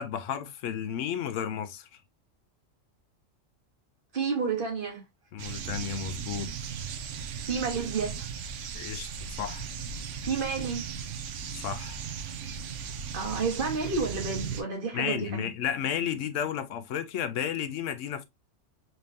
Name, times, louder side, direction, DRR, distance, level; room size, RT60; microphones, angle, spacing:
voice 1, 0.0-1.9 5.3-6.5 8.7-9.1 9.4-9.7 11.5-12.0 14.9-18.3, left 9 dB, 80° left, 0.9 m, -32 dB
voice 2, 4.1-5.0 7.5-8.2 10.2-11.0 13.1-15.5, right 5 dB, 45° right, 1.3 m, -30 dB
sound 1, 5.4-14.6, right 6 dB, 75° right, 1.0 m, -37 dB
4.1 x 3.4 x 2.6 m
omnidirectional pair, 1.3 m